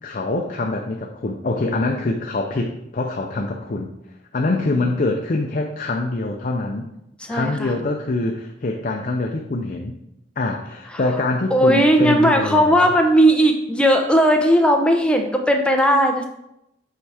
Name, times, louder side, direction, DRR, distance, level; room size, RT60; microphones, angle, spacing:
voice 1, 0.0-3.9 4.3-6.9 7.3-9.9 10.4-12.9, left 2 dB, 45° left, 2 dB, 0.6 m, -24 dB
voice 2, 7.2-7.8 10.9-11.0 11.5-16.3, equal, 5° left, 3 dB, 0.7 m, -17 dB
8.0 x 4.7 x 3.4 m, 0.84 s
head